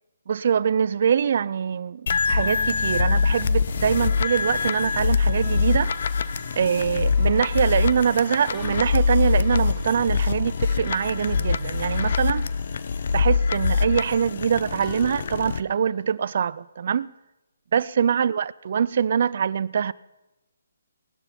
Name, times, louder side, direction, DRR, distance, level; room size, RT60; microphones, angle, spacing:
voice 1, 0.3-5.9 6.6-12.5 13.1-17.1 17.7-19.9, right 7 dB, 55° right, 0.3 m, -24 dB
sound 1, 2.1-15.6, left 5 dB, 55° left, 0.6 m, -24 dB
sound 2, 2.3-4.8 8.5-10.4 14.8-16.2, left 5 dB, 15° left, 1.3 m, -46 dB
sound 3, 3.7-13.6, right 4 dB, 30° right, 3.2 m, -50 dB
18.0 x 11.5 x 4.3 m
hypercardioid pair, 150°, 0 cm